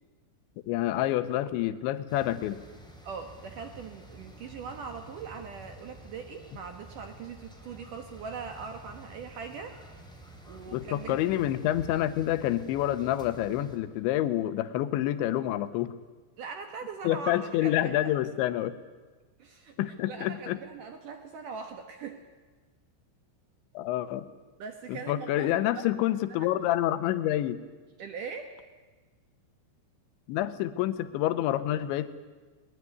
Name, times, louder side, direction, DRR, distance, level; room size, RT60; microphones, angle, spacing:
voice 1, 0.7-2.6 10.7-15.9 17.0-18.7 19.8-20.6 23.7-24.3 24.9-27.6 30.3-32.1, left 13 dB, 75° left, 12 dB, 3.0 m, -28 dB
sound 1, 2.1-13.8, right 1 dB, ahead, 2.1 m, -49 dB
voice 2, 3.0-9.8 10.5-11.2 16.4-18.1 19.4-19.8 20.1-22.2 24.6-25.8 28.0-28.6, right 5 dB, 75° right, 6 dB, 1.9 m, -41 dB
21.0 x 21.0 x 9.6 m, 1.3 s
omnidirectional pair, 5.8 m